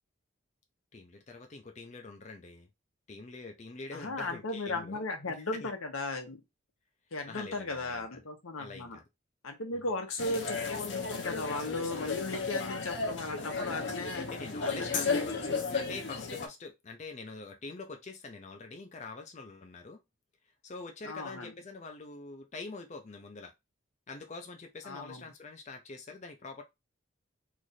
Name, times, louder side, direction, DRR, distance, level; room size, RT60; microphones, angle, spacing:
voice 1, 0.9-2.7 3.1-5.7 7.2-8.2 8.6-9.0 10.6-10.7 14.2-20.0 20.6-23.5 24.1-26.6, left 3 dB, 35° left, 0.5 m, -45 dB
voice 2, 3.9-6.4 7.1-9.0 9.4-14.3 14.6-15.6 15.9-16.0 21.0-21.5 24.8-25.2, left 2 dB, 90° left, 1.0 m, -36 dB
sound 1, 10.2-16.5, left 4 dB, 60° left, 0.8 m, -34 dB
3.1 x 2.5 x 4.0 m
head